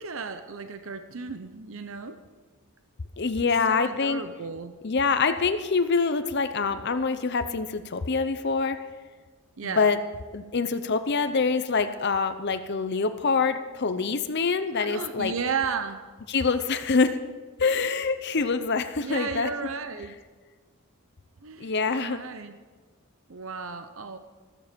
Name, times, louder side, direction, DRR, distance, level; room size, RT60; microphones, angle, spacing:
voice 1, 0.0-2.2 3.4-4.7 9.6-9.9 14.7-16.1 19.0-20.2 21.4-22.6 23.3-24.2, right 5 dB, 60° right, 9 dB, 0.7 m, -34 dB
voice 2, 3.2-4.2 4.8-8.8 9.6-10.0 10.3-15.3 16.3-17.2 17.6-19.5 21.6-22.2, left 4 dB, 50° left, 10 dB, 0.7 m, -25 dB
14.0 x 14.0 x 5.2 m, 1.4 s
head